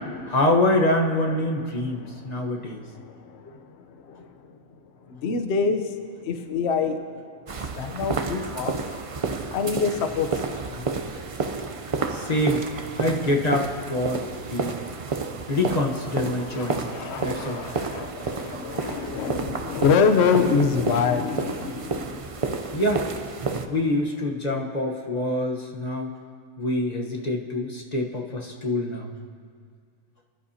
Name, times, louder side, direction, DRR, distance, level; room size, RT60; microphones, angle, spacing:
voice 1, 0.3-2.8 12.1-12.7 13.0-14.7 15.5-16.8 17.2-17.6 22.7-23.1 23.7-26.1 26.6-29.1, left 1 dB, 30° left, 0 dB, 1.1 m, -25 dB
voice 2, 2.0-2.6 2.9-3.6 4.1-4.3 5.1-5.9 6.3-7.0 7.7-8.7 9.5-10.3 10.7-10.9 16.2-22.1, left 5 dB, 55° left, 6 dB, 1.0 m, -25 dB
sound 1, 7.5-23.7, right 4 dB, 50° right, 0.4 m, -31 dB
24.5 x 11.5 x 2.8 m, 2.1 s
omnidirectional pair, 1.5 m